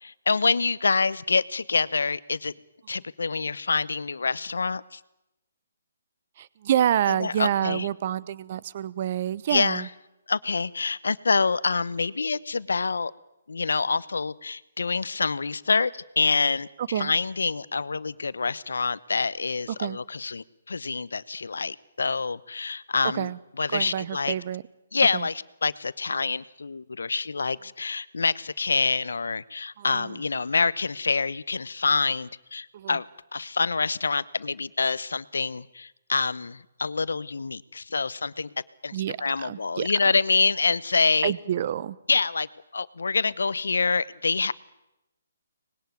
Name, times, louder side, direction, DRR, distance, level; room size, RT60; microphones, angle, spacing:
voice 1, 0.0-2.5 2.9-5.0 7.1-7.9 9.5-9.9 10.3-13.1 13.5-23.3 23.6-24.3 24.9-33.0 33.3-38.5 38.8-41.3 42.1-42.5 42.7-44.5, left 4 dB, 75° left, 18 dB, 0.9 m, -26 dB
voice 2, 6.4-9.9 16.9-17.1 19.8-20.0 23.1-23.4 23.7-24.6 25.1-25.3 29.8-30.1 32.7-33.0 38.9-39.9 41.2-42.0, right 10 dB, 45° right, 19 dB, 0.9 m, -28 dB
24.5 x 20.5 x 9.4 m, 0.92 s
figure-of-eight pair, 145°, 0 cm